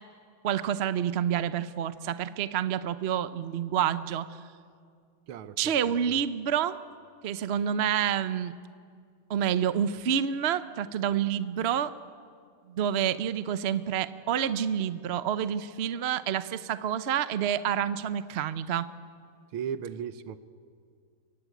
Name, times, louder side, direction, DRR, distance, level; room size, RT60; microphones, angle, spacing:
voice 1, 0.4-4.3 5.6-6.8 7.2-8.5 9.3-11.9 12.7-18.9, right 9 dB, 65° right, 13 dB, 0.6 m, -28 dB
voice 2, 5.3-5.8 19.5-20.4, right 8 dB, 90° right, 13 dB, 1.8 m, -36 dB
24.5 x 23.0 x 9.2 m, 2.2 s
omnidirectional pair, 2.3 m